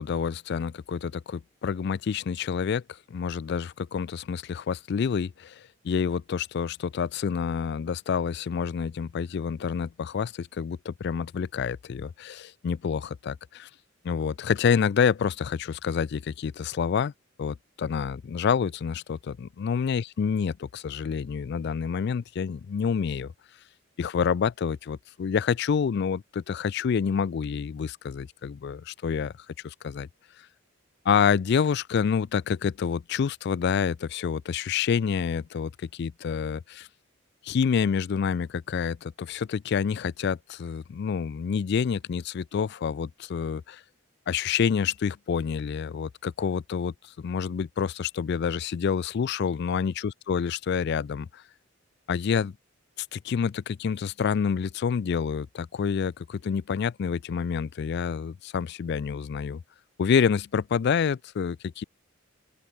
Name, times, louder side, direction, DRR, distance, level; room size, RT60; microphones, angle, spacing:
voice 1, 0.0-2.8 3.1-13.7 14.0-17.1 17.4-23.3 24.0-29.3 29.6-30.1 31.1-36.9 37.4-43.8 44.3-51.4 52.1-52.5 53.0-59.6 60.0-61.8, left 6 dB, 50° left, 0.3 m, -28 dB
open air
head